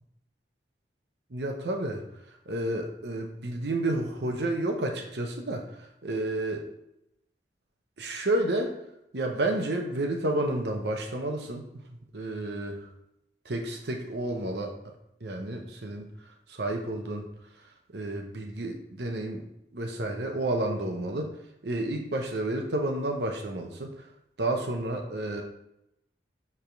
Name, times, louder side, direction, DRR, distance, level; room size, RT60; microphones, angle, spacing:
voice 1, 1.3-2.0 2.3-6.7 8.0-8.7 9.1-11.8 12.1-12.7 13.4-14.7 15.2-17.3 17.9-21.3 21.6-24.1 24.4-25.4, right 1 dB, 70° right, 3 dB, 0.8 m, -31 dB
7.2 x 3.5 x 4.5 m, 0.81 s
head